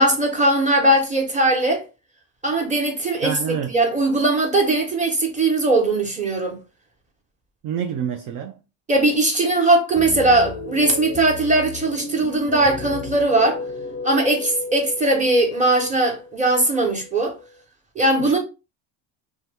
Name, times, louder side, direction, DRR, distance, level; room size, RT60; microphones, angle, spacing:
voice 1, 0.0-1.8 2.4-6.6 8.9-13.6 14.0-17.3 17.9-18.4, right 2 dB, 15° right, 1.1 m, -19 dB
voice 2, 3.2-3.7 7.6-8.6 18.2-18.4, right 8 dB, 45° right, 0.4 m, -27 dB
sound 1, 9.9-17.4, left 4 dB, 25° left, 0.5 m, -34 dB
2.7 x 2.3 x 3.4 m
supercardioid pair, 90°, 49 cm